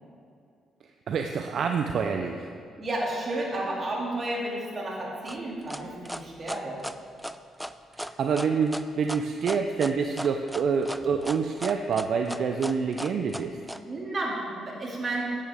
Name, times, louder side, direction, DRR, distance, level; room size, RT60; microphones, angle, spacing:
voice 1, 1.1-2.5 7.9-13.6, right 5 dB, 60° right, 5 dB, 0.5 m, -27 dB
voice 2, 2.8-6.8 13.9-15.4, right 1 dB, 40° right, -3 dB, 2.4 m, -32 dB
sound 1, 5.3-13.8, equal, ahead, 0.3 m, -36 dB
10.5 x 8.8 x 3.5 m, 2.4 s
cardioid pair, 90°, 0 cm